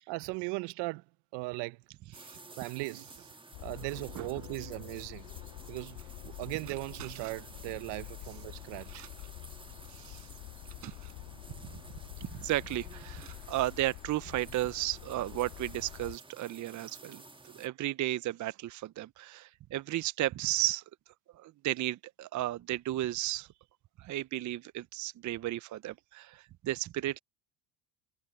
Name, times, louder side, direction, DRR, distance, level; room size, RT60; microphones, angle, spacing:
voice 1, 0.1-1.0 1.3-1.8 2.6-3.1 3.6-5.3 5.7-6.0 6.2-9.1, right 24 dB, 65° right, 1.1 m, -38 dB
sound 1, 2.1-17.7, right 3 dB, 10° right, 1.5 m, -53 dB
sound 2, 3.5-16.2, left 22 dB, 55° left, 0.7 m, -47 dB
sound 3, 5.9-6.1 6.6-7.6 8.4-8.5 8.8-9.4 10.2-10.3 10.7-11.3 12.6-12.7 13.1-13.5, right 14 dB, 85° right, 4.4 m, -53 dB
voice 2, 9.9-10.3 11.6-11.7 12.2-20.8 21.3-23.5 24.0-27.2, right 15 dB, 40° right, 0.8 m, -34 dB
hypercardioid pair, 75°, 46 cm